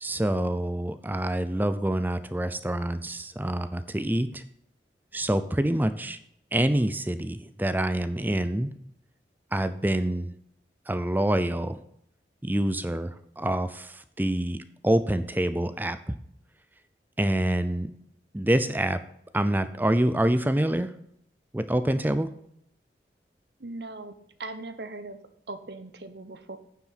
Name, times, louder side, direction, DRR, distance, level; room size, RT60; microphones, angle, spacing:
voice 1, 0.0-4.4 5.1-6.2 6.5-8.7 9.5-10.3 10.9-11.8 12.4-14.6 14.8-16.0 17.2-17.9 18.3-19.0 19.3-20.9 21.5-22.3, right 1 dB, 10° right, 12 dB, 0.5 m, -26 dB
voice 2, 23.6-25.2 25.5-26.6, right 2 dB, 70° right, 10 dB, 1.1 m, -39 dB
9.7 x 7.4 x 5.8 m, 0.71 s
head